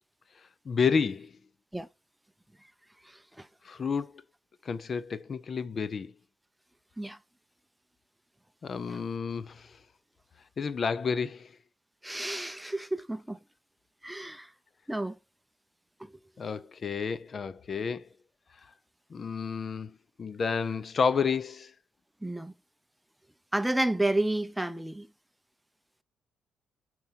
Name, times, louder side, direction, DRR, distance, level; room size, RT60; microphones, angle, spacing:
voice 1, 0.7-1.3 3.6-4.1 4.6-6.1 8.6-9.8 10.6-11.5 16.4-18.1 19.1-21.7, left 5 dB, 45° left, 0.6 m, -30 dB
voice 2, 3.1-3.5 7.0-7.2 8.9-9.0 12.0-13.4 14.0-14.5 14.9-15.2 22.2-22.5 23.5-25.1, right 1 dB, 5° right, 0.6 m, -31 dB
9.1 x 4.5 x 2.9 m
cardioid pair, 90°, 0 cm